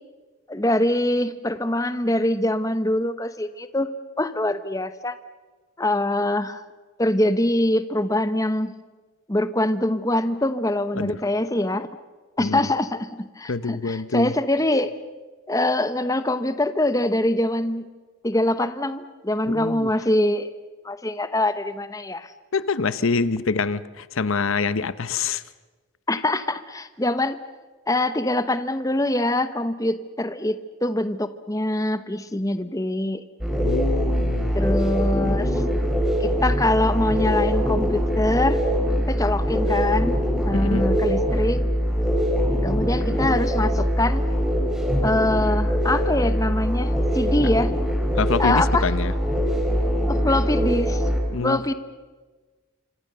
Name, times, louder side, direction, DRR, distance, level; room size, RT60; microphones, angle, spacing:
voice 1, 0.5-3.9 4.2-5.2 5.8-6.6 7.0-8.7 9.3-11.9 12.4-15.0 15.5-17.9 18.2-20.5 20.8-22.3 26.1-27.4 27.9-33.2 34.5-35.6 36.2-38.6 39.1-40.1 40.5-41.6 42.6-44.2 45.0-47.7 48.4-48.9 50.1-51.1 51.4-51.7, left 1 dB, 15° left, 12 dB, 0.9 m, -24 dB
voice 2, 12.4-12.7 13.5-14.3 19.5-19.9 22.5-25.4 33.6-34.6 40.5-40.9 48.2-49.1 51.3-51.6, left 4 dB, 75° left, 16 dB, 0.8 m, -25 dB
sound 1, 33.4-51.2, equal, 5° right, 4.2 m, -22 dB
27.5 x 25.5 x 6.8 m, 1.3 s
head